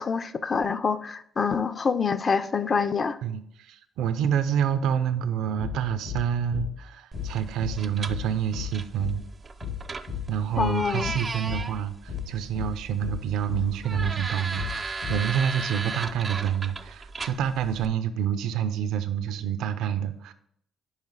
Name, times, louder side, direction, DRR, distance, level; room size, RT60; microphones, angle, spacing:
voice 1, 0.0-3.2 10.6-11.1, left 5 dB, 40° left, 11 dB, 0.4 m, -26 dB
voice 2, 3.2-9.2 10.3-20.3, right 9 dB, 85° right, 11 dB, 0.5 m, -28 dB
sound 1, 5.6-5.8 6.1-6.3 6.5-6.7 7.1-7.3 7.6-7.8 8.1-8.3 8.5-8.7 9.0-9.2 9.6-9.8 10.1-10.3 10.5-10.7 11.0-11.2 11.5-11.7 12.1-12.3 12.5-12.7 13.0-13.2 13.5-13.7 13.9-14.1 14.6-14.8 15.0-15.2, left 8 dB, 75° left, 2.9 m, -33 dB
sound 2, 7.1-17.9, right 4 dB, 30° right, 0.4 m, -37 dB
5.6 x 4.9 x 4.6 m, 0.71 s
cardioid pair, 90°, 0 cm